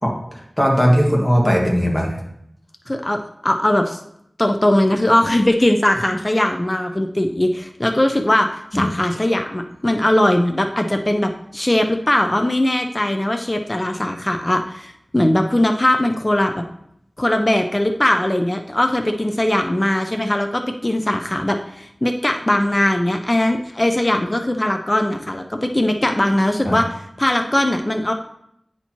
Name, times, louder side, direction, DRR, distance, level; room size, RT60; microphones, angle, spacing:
voice 1, 0.0-2.2 8.7-8.8 26.6-26.8, equal, 15° left, -2 dB, 1.7 m, -18 dB
voice 2, 2.9-4.0 4.4-16.6 17.2-26.9 27.2-28.1, left 1 dB, 30° left, 4 dB, 0.5 m, -20 dB
9.4 x 4.4 x 2.9 m, 0.75 s
wide cardioid pair, 60°, 0 cm